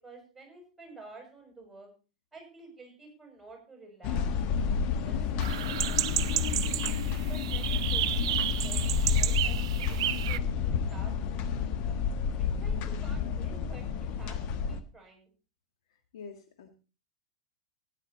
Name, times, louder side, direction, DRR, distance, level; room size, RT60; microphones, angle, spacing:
voice 1, 0.0-1.9 2.3-4.2 4.9-6.8 7.3-11.9 12.4-14.4 14.7-15.3, right 3 dB, 5° right, 1 dB, 6.4 m, -51 dB
sound 1, 4.0-14.8, left 6 dB, 40° left, 1.3 m, -30 dB
sound 2, 5.4-10.4, right 13 dB, 55° right, 0.5 m, -31 dB
voice 2, 16.1-16.7, left 5 dB, 55° left, 5 dB, 2.0 m, -47 dB
15.0 x 10.5 x 4.2 m, 0.35 s
figure-of-eight pair, 95°, 3 cm